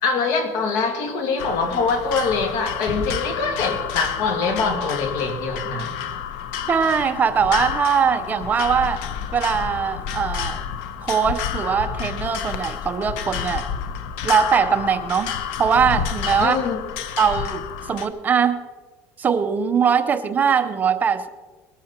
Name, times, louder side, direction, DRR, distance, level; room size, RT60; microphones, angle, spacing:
voice 1, 0.0-6.0 16.4-16.8, left 4 dB, 70° left, 6 dB, 2.4 m, -24 dB
sound 1, 1.4-18.1, left 8 dB, 90° left, 1.1 m, -30 dB
Gunshot gunfire / Fireworks / Boom, 2.9-7.7, right 2 dB, 25° left, 3.6 m, -40 dB
voice 2, 6.7-9.0 9.3-10.6 11.0-13.7 14.2-15.3 15.6-16.6 17.2-18.6 19.2-21.3, right 6 dB, 25° right, 10 dB, 0.7 m, -21 dB
20.0 x 12.5 x 4.4 m, 1.4 s
cardioid pair, 145°, 7 cm